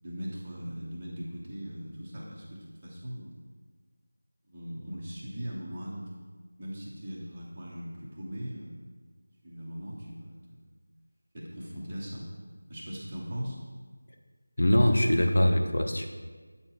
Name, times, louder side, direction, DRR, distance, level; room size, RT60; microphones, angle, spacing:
voice 1, 0.0-3.4 4.5-6.1 6.6-8.8 9.4-10.7 11.3-12.3 12.7-13.6, equal, 15° right, -7 dB, 0.8 m, -39 dB
voice 2, 14.6-16.1, left 1 dB, 50° left, 4 dB, 0.6 m, -23 dB
8.1 x 4.3 x 4.4 m, 1.4 s
figure-of-eight pair, 180°, 0 cm